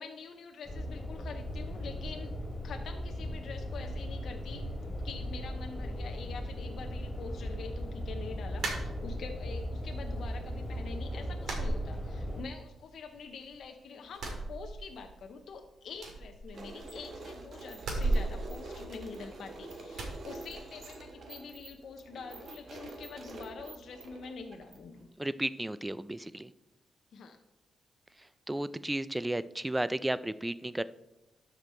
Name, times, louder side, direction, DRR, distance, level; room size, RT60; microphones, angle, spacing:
voice 1, 0.0-2.3 2.6-4.6 5.0-25.1 27.1-27.4, left 5 dB, 70° left, 4 dB, 0.7 m, -45 dB
sound 1, 0.6-12.4, equal, 15° left, 3.1 m, -38 dB
sound 2, 8.6-9.5 9.9-10.6 10.8-11.0 11.4-12.5 12.8-13.7 14.1-15.2 15.5-15.6 15.9-17.1 17.8-19.4 19.9-20.2, right 2 dB, 80° right, 2.0 m, -35 dB
sound 3, 16.5-25.0, right 2 dB, 55° right, 1.5 m, -46 dB
voice 2, 25.2-26.5 28.2-30.8, right 1 dB, 10° right, 16 dB, 0.3 m, -34 dB
12.5 x 5.1 x 4.3 m, 0.95 s
cardioid pair, 105°, 0 cm